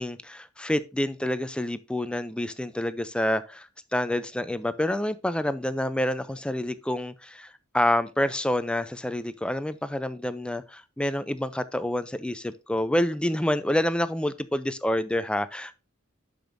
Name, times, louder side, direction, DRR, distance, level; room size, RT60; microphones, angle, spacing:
voice 1, 0.0-15.8, left 1 dB, 5° left, 0.4 m, -28 dB
12.0 x 5.1 x 2.6 m
head